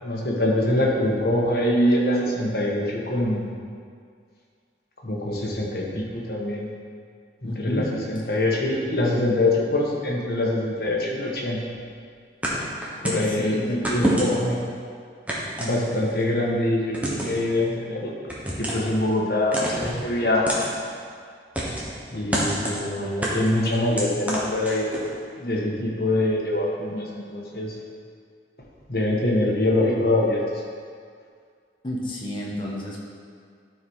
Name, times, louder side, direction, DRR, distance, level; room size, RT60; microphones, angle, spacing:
voice 1, 0.0-3.4 5.0-6.7 7.4-11.6 13.0-14.6 15.6-18.1 18.6-20.5 22.1-24.9 25.4-27.7 28.9-30.4, left 1 dB, 55° left, -3 dB, 1.7 m, -24 dB
voice 2, 7.4-7.9 12.9-13.0 13.3-13.8 31.8-33.0, equal, 25° left, -4 dB, 1.3 m, -30 dB
sound 1, 12.4-13.3 13.8-14.5 15.3-16.2 16.9-17.4 18.3-18.9 19.5-20.0 20.5-20.7 21.5-21.9 22.3-22.8 23.2-25.1, right 1 dB, 10° right, 1.2 m, -27 dB
12.0 x 4.9 x 4.8 m, 2.1 s
head